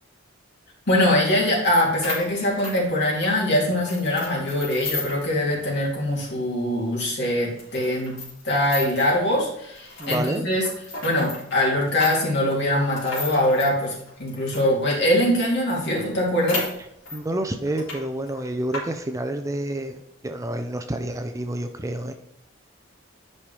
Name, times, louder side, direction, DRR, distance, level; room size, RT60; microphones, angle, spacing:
voice 1, 0.9-8.2 8.4-10.6 11.0-16.7, left 1 dB, 60° left, -4 dB, 2.7 m, -22 dB
sound 1, 1.7-1.8 2.0-3.4 3.8-5.3 5.6-5.7 6.1-6.2 6.8-6.9 7.6-9.2 9.8-14.7 15.2-15.3 15.5-15.6 15.9-17.2 17.7-18.0 18.3-18.8, left 3 dB, 85° left, 3.0 m, -34 dB
voice 2, 10.0-10.4 17.1-22.1, right 1 dB, 15° right, 7 dB, 0.4 m, -29 dB
10.0 x 5.4 x 3.3 m, 0.79 s
head